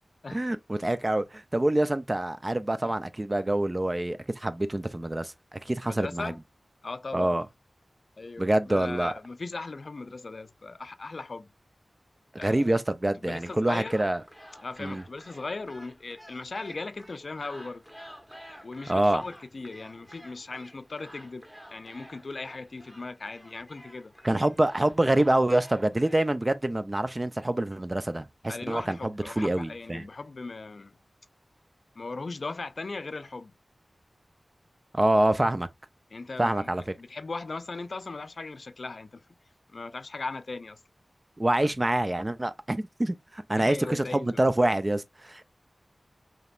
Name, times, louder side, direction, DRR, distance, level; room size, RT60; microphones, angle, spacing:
voice 1, 0.3-5.3 5.7-6.3 7.1-7.5 8.4-9.1 12.4-14.2 14.8-15.0 18.9-19.2 24.2-30.1 34.9-35.7 36.4-36.8 41.4-45.4, right 1 dB, 30° right, 0.5 m, -26 dB
voice 2, 5.8-6.4 6.8-7.4 8.2-11.5 12.4-12.7 13.2-14.0 14.6-17.8 18.6-24.1 28.5-30.9 32.0-33.5 36.1-36.7 37.0-39.2 39.7-40.8 43.6-44.4, left 3 dB, 65° left, 0.4 m, -38 dB
sound 1, 13.2-26.3, equal, 5° right, 1.2 m, -50 dB
5.1 x 2.9 x 2.4 m
cardioid pair, 45°, 0 cm